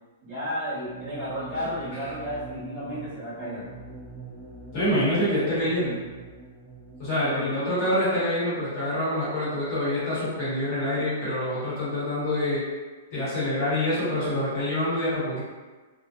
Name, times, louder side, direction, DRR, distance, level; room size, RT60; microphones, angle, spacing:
voice 1, 0.2-3.7 7.1-7.6, equal, 30° right, -12 dB, 1.0 m, -33 dB
sound 1, 0.8-7.1, right 2 dB, 5° left, 0.4 m, -43 dB
voice 2, 4.7-6.0 7.0-12.7 13.1-15.4, left 1 dB, 30° left, -10 dB, 1.0 m, -26 dB
2.6 x 2.1 x 2.3 m, 1.4 s
hypercardioid pair, 175°, 0 cm